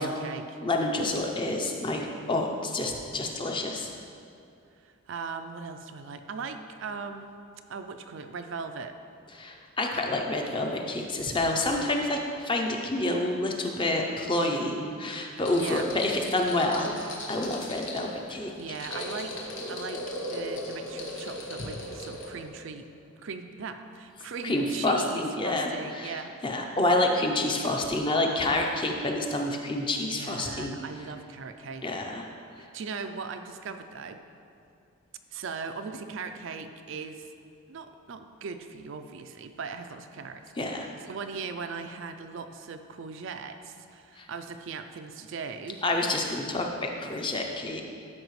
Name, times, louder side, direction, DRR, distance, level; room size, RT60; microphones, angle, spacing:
voice 1, 0.0-0.6 4.8-7.3 7.7-9.0 15.6-15.9 18.3-22.9 23.2-26.6 30.1-32.0 32.6-34.2 35.3-37.3 37.7-45.8, right 5 dB, 60° right, 7 dB, 0.4 m, -39 dB
voice 2, 0.6-3.9 9.3-18.5 24.4-30.8 31.8-32.3 32.6-32.7 40.6-40.9 44.2-44.3 45.8-47.8, left 2 dB, 20° left, 1 dB, 0.5 m, -28 dB
sound 1, 15.4-22.5, left 1 dB, 60° left, 1.3 m, -38 dB
13.0 x 4.9 x 3.2 m, 2.4 s
head